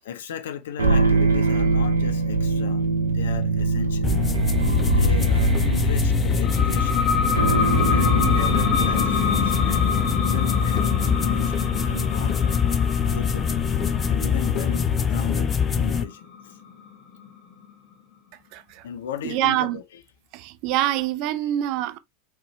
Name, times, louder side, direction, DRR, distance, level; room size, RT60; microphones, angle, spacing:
voice 1, 0.1-2.8 3.1-4.1 4.8-7.2 7.8-12.7 13.1-13.7 14.1-16.6 18.8-20.0, left 9 dB, 65° left, 0.7 m, -35 dB
sound 1, 0.8-12.2, right 4 dB, 80° right, 0.8 m, -24 dB
sound 2, 4.0-16.0, left 7 dB, 25° left, 0.6 m, -23 dB
sound 3, 6.4-17.7, left 6 dB, 45° left, 1.7 m, -27 dB
voice 2, 18.5-18.8 19.2-19.8 20.3-22.0, right 13 dB, 50° right, 0.5 m, -25 dB
4.7 x 3.2 x 3.1 m
figure-of-eight pair, 85°, 0 cm